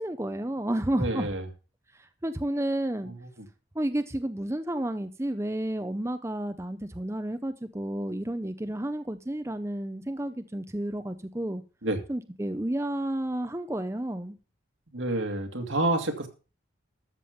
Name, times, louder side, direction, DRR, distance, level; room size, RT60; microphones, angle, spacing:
voice 1, 0.0-1.3 2.0-3.1 3.7-11.6 12.1-14.3, right 1 dB, 15° right, 0.6 m, -31 dB
voice 2, 1.0-1.5 3.0-3.5 11.8-12.0 14.9-16.3, right 2 dB, 80° right, 2.2 m, -29 dB
13.0 x 7.5 x 5.1 m
head